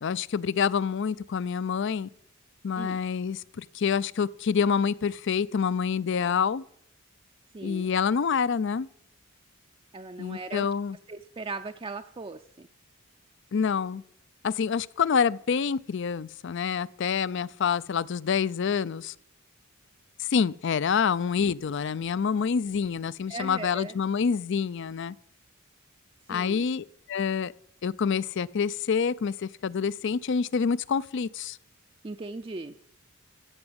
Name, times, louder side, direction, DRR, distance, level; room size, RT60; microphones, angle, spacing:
voice 1, 0.0-2.1 2.6-6.6 7.6-8.9 10.2-11.0 13.5-14.0 14.4-19.1 20.2-25.1 26.3-27.5 27.8-31.6, left 6 dB, 55° left, 0.4 m, -27 dB
voice 2, 7.5-7.9 9.9-10.7 11.1-12.7 23.3-23.9 26.3-26.7 32.0-32.7, right 3 dB, 25° right, 0.4 m, -38 dB
14.5 x 7.0 x 8.0 m
head